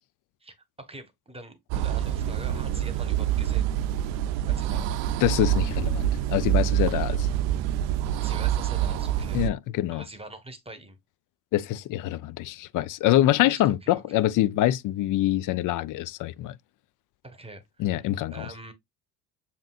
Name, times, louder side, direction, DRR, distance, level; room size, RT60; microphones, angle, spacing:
voice 1, 0.4-3.7 4.5-4.9 8.2-9.4 9.9-11.0 13.4-14.2 17.2-18.0 18.3-18.7, right 2 dB, 10° right, 1.3 m, -44 dB
sound 1, 1.7-9.5, right 11 dB, 65° right, 0.6 m, -26 dB
voice 2, 5.2-7.3 9.3-10.0 11.5-16.5 17.8-18.5, left 14 dB, 45° left, 0.5 m, -25 dB
7.2 x 2.8 x 2.4 m
hypercardioid pair, 65°, 47 cm